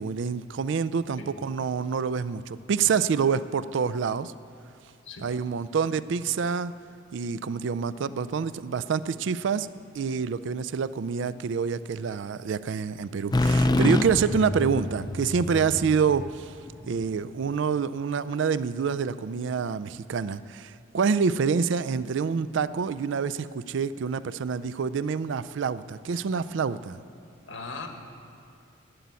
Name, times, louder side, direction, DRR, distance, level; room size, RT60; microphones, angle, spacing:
voice 1, 0.0-4.3 5.2-6.7 7.1-9.7 9.9-16.5 16.9-27.0, right 6 dB, 65° right, 15 dB, 0.4 m, -27 dB
sound 1, 13.3-17.1, left 1 dB, 20° left, 0.4 m, -26 dB
voice 2, 27.5-27.9, left 3 dB, 80° left, 4 dB, 1.4 m, -38 dB
11.5 x 8.2 x 9.5 m, 2.5 s
head